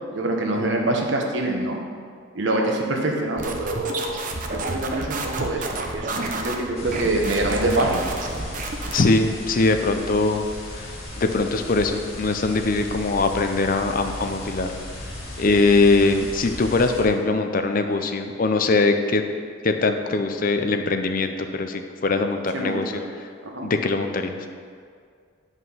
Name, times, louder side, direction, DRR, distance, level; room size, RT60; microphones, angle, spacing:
voice 1, 0.1-1.8 2.3-4.2 4.5-8.2 22.5-22.8 23.4-23.7, right 2 dB, 60° right, 1 dB, 1.2 m, -25 dB
sound 1, 3.4-9.1, right 2 dB, 40° right, 0.8 m, -31 dB
sound 2, 6.7-17.0, left 1 dB, 70° left, 2.2 m, -36 dB
voice 2, 8.9-10.4 10.7-14.7 15.4-19.2 19.6-23.0 23.6-24.4, left 3 dB, 40° left, 6 dB, 0.5 m, -22 dB
9.8 x 5.4 x 5.6 m, 2.1 s
head